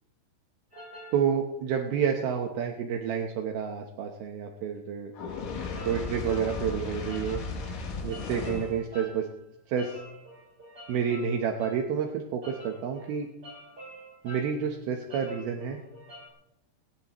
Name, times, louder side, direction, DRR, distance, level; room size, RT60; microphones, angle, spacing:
sound 1, 0.7-1.3 5.8-6.5 7.1-9.3 9.8-11.9 12.4-14.6 15.1-16.3, equal, 20° right, 6.1 m, -47 dB
voice 1, 1.1-5.1 5.9-7.4 8.0-9.3 9.7-10.0 10.9-13.3 14.2-15.8, right 7 dB, 70° right, 2 dB, 2.4 m, -29 dB
Fire, 5.1-8.8, left 4 dB, 70° left, 4.8 m, -35 dB
19.5 x 19.5 x 3.1 m, 0.83 s
omnidirectional pair, 5.7 m